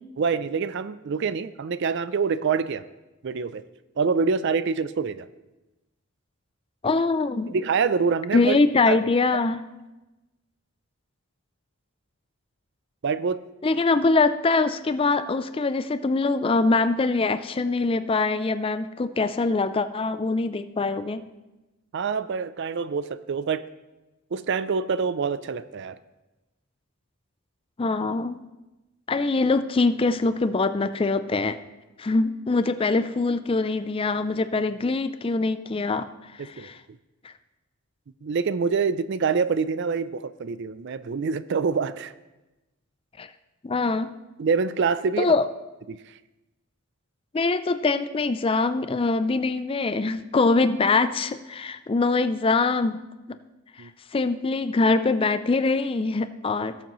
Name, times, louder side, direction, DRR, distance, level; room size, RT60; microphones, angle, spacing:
voice 1, 0.2-2.8 3.2-3.6 4.0-5.3 7.5-8.6 8.9-9.0 13.0-13.4 21.9-23.6 24.3-26.0 36.4-36.7 38.2-42.1 44.4-45.3 45.9-46.0 53.8-53.9, right 5 dB, 55° right, 15 dB, 0.4 m, -26 dB
voice 2, 6.8-7.6 8.3-9.6 13.6-21.2 27.8-28.4 29.1-31.6 32.0-36.1 36.4-36.8 37.2-37.3 43.2-43.3 43.6-44.1 45.2-45.4 47.3-53.0 54.1-56.8, left 3 dB, 25° left, 12 dB, 0.4 m, -23 dB
18.5 x 7.3 x 3.1 m, 1.1 s
head